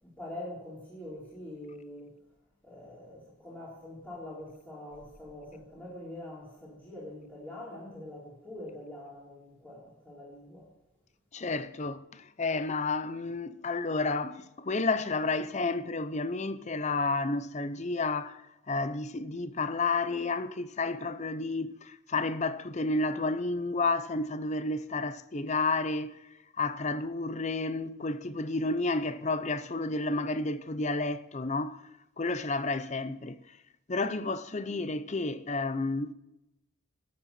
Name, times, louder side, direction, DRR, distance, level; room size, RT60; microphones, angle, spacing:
voice 1, 0.0-2.1 2.6-10.7, left 1 dB, 10° left, 3.8 m, -44 dB
voice 2, 11.3-18.4 18.7-26.2 26.6-31.8 32.2-33.6 33.9-36.1, left 3 dB, 35° left, 0.6 m, -31 dB
13.0 x 8.3 x 4.3 m
head